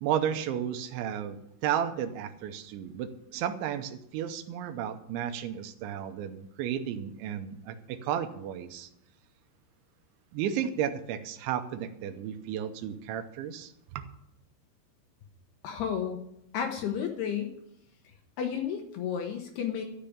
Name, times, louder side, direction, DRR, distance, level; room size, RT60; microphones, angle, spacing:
voice 1, 0.0-8.9 10.3-14.0, right 9 dB, 75° right, 8 dB, 3.0 m, -33 dB
voice 2, 15.6-16.2 16.5-17.5 18.4-19.9, left 8 dB, 75° left, 4 dB, 2.5 m, -32 dB
12.0 x 6.7 x 8.6 m, 0.76 s
omnidirectional pair, 5.8 m